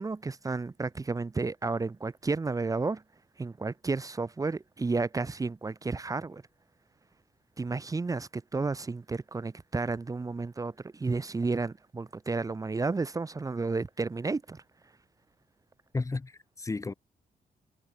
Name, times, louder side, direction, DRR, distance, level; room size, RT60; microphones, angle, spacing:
voice 1, 0.0-3.0 3.4-6.4 7.6-14.6, right 3 dB, 20° right, 1.6 m, -32 dB
voice 2, 15.9-16.9, left 3 dB, 20° left, 2.0 m, -33 dB
wide cardioid pair, 175°, 16 cm